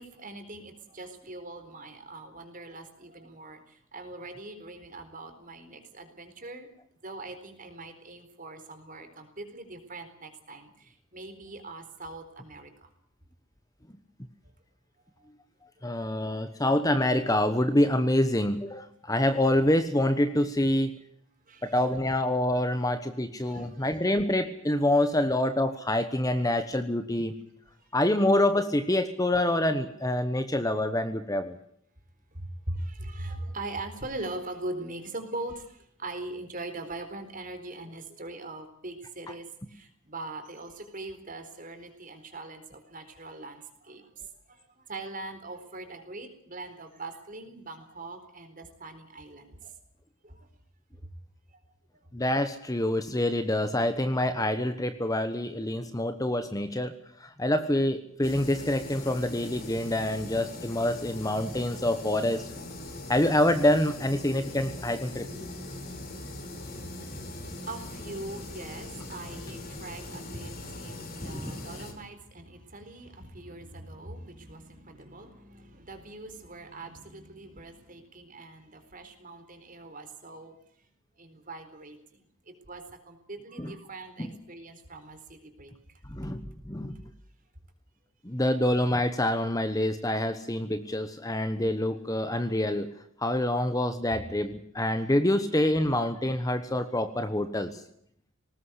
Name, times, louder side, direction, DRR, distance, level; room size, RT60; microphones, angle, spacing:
voice 1, 0.0-6.7 7.0-12.9 15.2-15.3 21.5-21.7 23.4-24.0 32.4-49.7 50.2-50.5 67.2-80.5 81.2-82.2 82.7-85.7, right 2 dB, 40° right, 8 dB, 4.2 m, -41 dB
voice 2, 15.8-20.9 21.6-27.3 27.9-31.6 52.1-56.9 57.2-62.5 63.1-65.3 71.2-71.7 83.6-83.7 84.2-84.3 86.1-87.0 88.2-92.9 93.2-97.8, left 1 dB, 15° left, 9 dB, 1.2 m, -26 dB
sound 1, 58.2-71.9, left 1 dB, 45° left, 4.5 m, -41 dB
20.5 x 19.0 x 8.2 m, 0.67 s
head